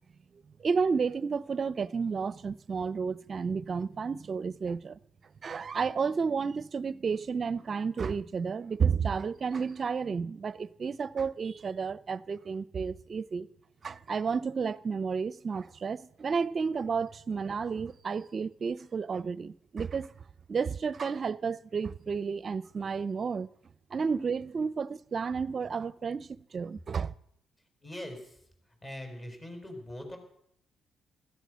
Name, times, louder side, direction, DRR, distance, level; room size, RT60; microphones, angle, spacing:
voice 1, 0.6-5.0 5.4-13.5 13.8-20.1 20.5-23.5 23.9-27.1, right 5 dB, 45° right, 0.6 m, -31 dB
voice 2, 27.8-28.3 28.8-30.2, left 1 dB, 25° left, 5.1 m, -41 dB
16.0 x 13.0 x 6.3 m
cardioid pair, 90°, 0 cm